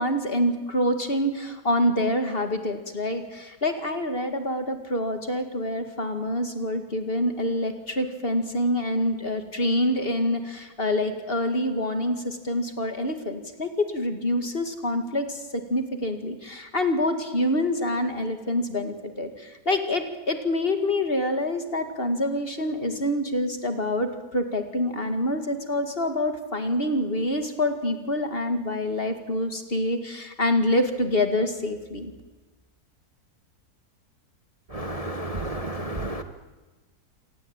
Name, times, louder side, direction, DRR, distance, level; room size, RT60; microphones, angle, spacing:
voice 1, 0.0-32.1, left 1 dB, 35° left, 7 dB, 2.4 m, -26 dB
voice 2, 34.7-36.2, right 1 dB, 25° right, 7 dB, 1.3 m, -31 dB
27.0 x 18.5 x 9.0 m, 1.2 s
omnidirectional pair, 1.7 m